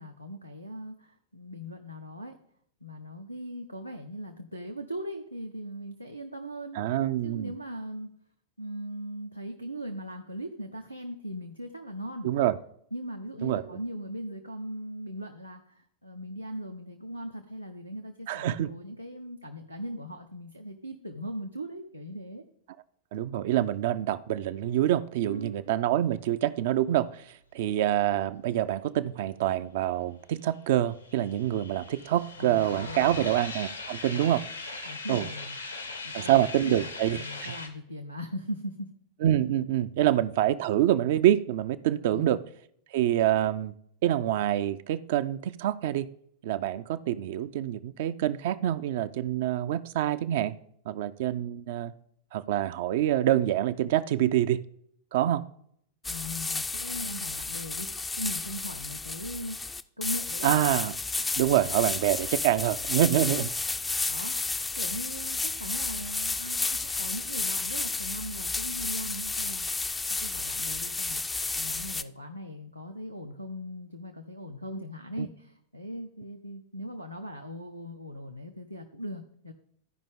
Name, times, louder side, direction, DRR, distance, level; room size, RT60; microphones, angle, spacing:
voice 1, 0.0-2.4 2.8-6.9 7.2-8.1 8.6-12.3 12.9-22.4 25.2-25.6 32.4-33.2 34.9-38.9 40.0-40.1 42.1-42.4 56.0-57.9 58.2-60.5 64.1-69.7 70.2-79.5, equal, 90° right, 2 dB, 0.7 m, -39 dB
voice 2, 6.7-7.5 12.2-12.6 13.4-13.6 18.3-18.7 23.1-27.1 27.5-34.4 35.1-35.3 36.1-37.5 39.2-42.4 42.9-43.7 44.0-46.1 46.4-50.5 50.9-51.9 52.3-54.6 55.1-55.4 60.4-60.9 61.4-63.5 75.2-75.3, right 12 dB, 55° right, 12 dB, 0.4 m, -26 dB
sound 1, 30.5-37.7, left 3 dB, 85° left, 1.3 m, -40 dB
sound 2, 56.0-72.0, left 3 dB, 10° left, 0.4 m, -32 dB
14.0 x 5.1 x 3.6 m, 0.68 s
figure-of-eight pair, 90°, 0 cm